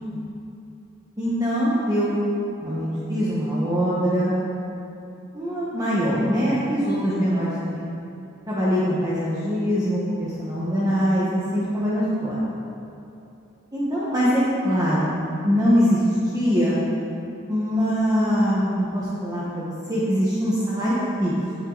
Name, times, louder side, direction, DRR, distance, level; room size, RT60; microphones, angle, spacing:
voice 1, 1.2-2.2 2.6-4.3 5.3-7.9 8.5-12.3 13.7-15.1 15.4-16.0 16.3-16.7 17.5-21.3, equal, 20° right, -9 dB, 1.4 m, -23 dB
9.4 x 9.0 x 4.1 m, 2.8 s
head